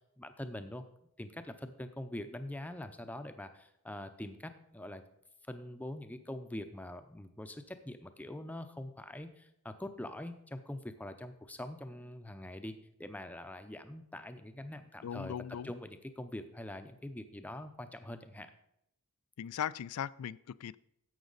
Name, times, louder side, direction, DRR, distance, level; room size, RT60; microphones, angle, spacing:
voice 1, 0.2-0.8 1.2-5.0 5.5-12.7 13.0-15.3 15.6-18.5, left 1 dB, 5° left, 8 dB, 0.6 m, -44 dB
voice 2, 15.0-15.7 19.4-20.8, left 9 dB, 80° left, 20 dB, 0.3 m, -38 dB
11.5 x 8.0 x 4.0 m, 0.78 s
head